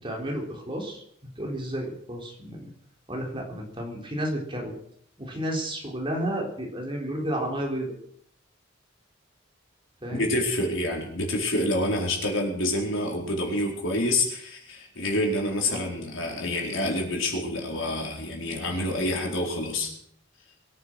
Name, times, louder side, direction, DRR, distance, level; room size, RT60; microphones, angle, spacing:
voice 1, 0.0-2.7 3.1-4.7 5.2-7.9 10.0-10.3 15.7-15.9, equal, 25° right, 0 dB, 3.8 m, -32 dB
voice 2, 10.1-19.9, left 1 dB, 75° left, 0 dB, 4.5 m, -27 dB
23.0 x 9.9 x 6.2 m, 0.68 s
head